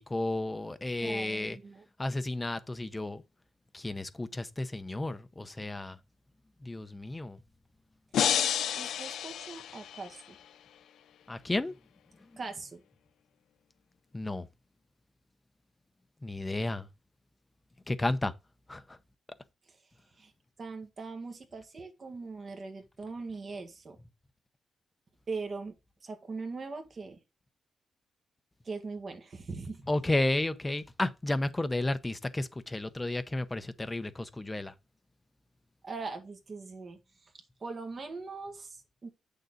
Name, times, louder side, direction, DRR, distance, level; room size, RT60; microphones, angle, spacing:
voice 1, 0.0-1.6 2.0-3.2 3.7-6.0 6.6-7.4 11.3-11.7 14.1-14.5 16.2-16.9 17.9-18.3 18.7-19.0 29.9-34.7, left 2 dB, 10° left, 0.7 m, -32 dB
voice 2, 1.0-1.8 8.8-10.4 12.4-12.8 19.7-19.8 20.2-20.3 20.6-24.0 25.3-25.8 26.0-27.2 28.6-29.8 35.8-37.3 37.6-39.1, right 4 dB, 30° right, 1.7 m, -41 dB
sound 1, 8.1-10.3, left 10 dB, 85° left, 0.5 m, -30 dB
8.0 x 6.7 x 3.8 m
wide cardioid pair, 165°, 0 cm